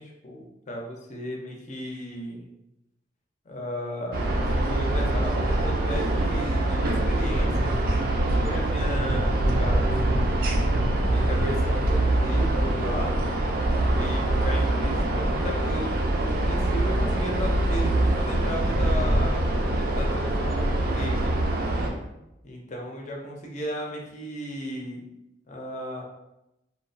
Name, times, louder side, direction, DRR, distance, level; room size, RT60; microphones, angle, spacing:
voice 1, 0.0-2.5 3.5-10.3 11.1-13.2 13.7-21.3 22.4-25.0 25.5-26.0, equal, 40° left, -1 dB, 0.5 m, -35 dB
sound 1, 4.1-21.9, right 1 dB, 55° right, 0.4 m, -24 dB
2.8 x 2.1 x 2.6 m, 0.90 s
head